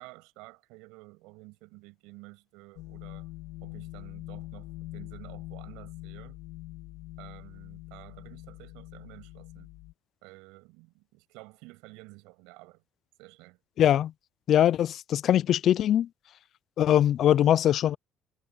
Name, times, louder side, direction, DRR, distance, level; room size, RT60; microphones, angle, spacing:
voice 1, 0.0-3.3 3.6-6.4 7.2-9.7 10.2-12.8 13.2-13.6, right 25 dB, 90° right, 7.9 m, -51 dB
sound 1, 2.8-9.9, left 18 dB, 85° left, 2.5 m, -44 dB
voice 2, 13.8-14.1 14.5-16.1 16.8-18.0, left 11 dB, 55° left, 0.4 m, -22 dB
cardioid pair, 105°, 0 cm